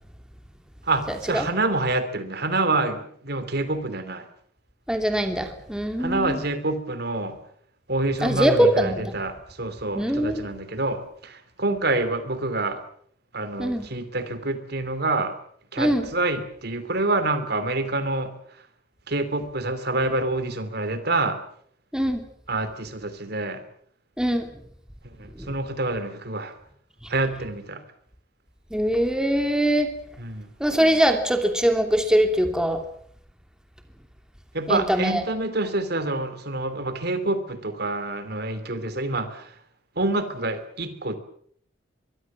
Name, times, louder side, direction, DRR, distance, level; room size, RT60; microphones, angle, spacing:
voice 1, 0.9-4.3 6.0-7.4 7.9-12.8 13.3-15.3 15.7-18.3 19.1-21.4 22.5-23.6 25.0-26.5 27.1-27.8 30.2-30.5 34.5-39.5 40.0-41.2, right 2 dB, 60° right, 11 dB, 2.9 m, -27 dB
voice 2, 4.9-6.4 8.2-9.1 9.9-10.4 13.6-13.9 15.8-16.1 21.9-22.2 24.2-24.5 25.4-25.5 28.7-29.9 30.6-32.8 34.7-35.2, equal, 5° right, 6 dB, 2.9 m, -22 dB
23.5 x 23.0 x 7.4 m, 0.64 s
head